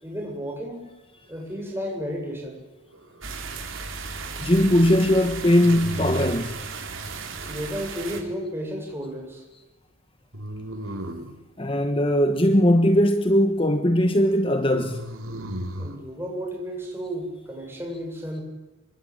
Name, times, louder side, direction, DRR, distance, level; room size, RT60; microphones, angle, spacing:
voice 1, 0.0-0.8 1.3-2.6 7.4-9.4 15.8-18.4, equal, 10° right, 7.7 m, -33 dB
sound 1, 2.9-3.6 5.6-6.6 10.3-11.4 14.7-16.0, equal, 80° right, 3.9 m, -34 dB
sound 2, 3.2-8.2, right 4 dB, 65° right, 4.7 m, -35 dB
voice 2, 4.4-6.6 11.6-15.1, equal, 25° left, 1.2 m, -20 dB
27.0 x 23.5 x 9.0 m
head